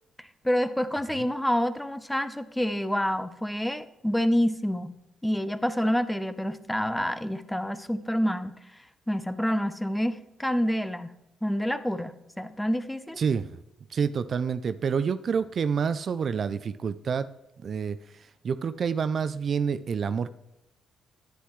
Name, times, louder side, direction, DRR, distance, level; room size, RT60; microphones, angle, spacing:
voice 1, 0.2-4.9 5.2-8.5 9.1-11.1 11.4-13.2, equal, 5° left, 13 dB, 0.6 m, -28 dB
voice 2, 13.2-13.6 13.9-17.3 17.6-18.0 18.4-20.3, right 6 dB, 50° right, 13 dB, 0.4 m, -28 dB
10.0 x 9.6 x 3.2 m, 0.86 s
cardioid pair, 90°, 0 cm